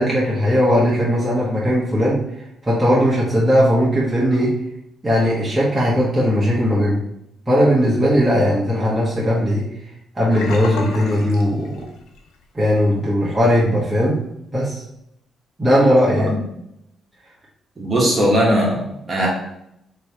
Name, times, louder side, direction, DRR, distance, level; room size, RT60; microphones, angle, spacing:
voice 1, 0.0-2.2 2.6-4.6 5.0-7.0 7.5-9.7 10.1-11.9 12.5-14.2 14.5-14.8 15.6-16.3, equal, 15° right, -8 dB, 1.4 m, -18 dB
Sink (filling or washing), 10.3-12.3 12.6-12.9 13.3-13.4, left 4 dB, 85° left, 0.8 m, -31 dB
voice 2, 17.8-19.3, equal, 30° right, -4 dB, 1.6 m, -19 dB
3.3 x 3.2 x 4.3 m, 0.79 s
cardioid pair, 90°, 0 cm